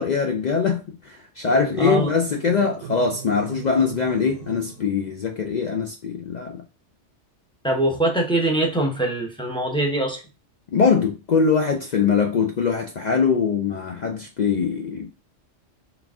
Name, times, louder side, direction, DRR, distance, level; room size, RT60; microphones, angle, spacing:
voice 1, 0.0-6.6 10.7-15.1, left 5 dB, 60° left, 0.4 m, -22 dB
sound 1, 1.4-4.9, right 9 dB, 60° right, 0.8 m, -39 dB
voice 2, 1.8-2.1 7.6-10.2, right 1 dB, 5° left, 0.5 m, -22 dB
3.9 x 2.4 x 3.5 m
omnidirectional pair, 1.2 m